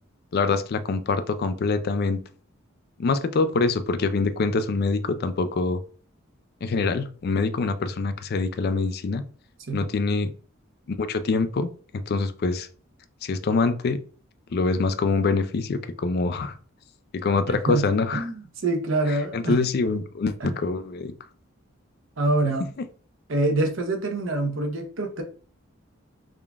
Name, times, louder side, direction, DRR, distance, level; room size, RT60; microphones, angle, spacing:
voice 1, 0.3-2.2 3.0-5.8 6.6-9.2 9.7-10.3 10.9-12.7 13.2-14.0 14.5-16.5 17.1-18.3 19.3-21.1, left 3 dB, 50° left, 0.4 m, -25 dB
voice 2, 17.5-17.9 18.1-19.6 20.4-20.5 22.2-22.7 23.3-25.2, right 2 dB, 65° right, 0.8 m, -25 dB
3.7 x 2.4 x 3.4 m
head